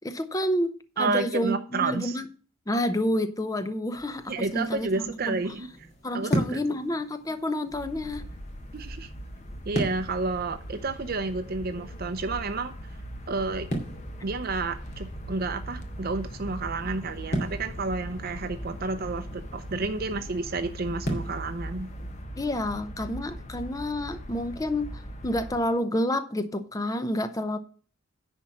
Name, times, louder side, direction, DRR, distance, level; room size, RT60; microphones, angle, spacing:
voice 1, 0.0-2.2 2.7-5.4 6.0-8.3 22.4-27.6, left 1 dB, 15° left, 0.6 m, -29 dB
voice 2, 1.0-2.2 4.3-5.7 6.1-6.6 8.7-9.1 9.7-12.7 13.3-13.7 14.2-21.9, right 3 dB, 50° right, 0.6 m, -30 dB
sound 1, 3.9-22.2, right 1 dB, 55° left, 2.4 m, -38 dB
sound 2, 7.7-25.6, equal, 35° left, 1.1 m, -40 dB
10.0 x 4.3 x 7.2 m
head